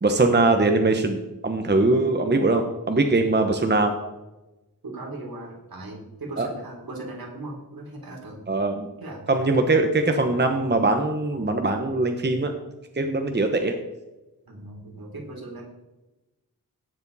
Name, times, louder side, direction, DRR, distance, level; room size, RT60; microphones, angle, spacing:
voice 1, 0.0-3.9 6.4-6.5 8.5-8.9 9.3-12.5 12.9-13.7, right 2 dB, 30° right, 5 dB, 1.0 m, -21 dB
voice 2, 4.8-8.4 9.0-9.2 14.5-15.6, right 2 dB, 70° right, -1 dB, 3.6 m, -38 dB
17.0 x 7.1 x 4.1 m, 1.0 s
wide cardioid pair, 105°, 37 cm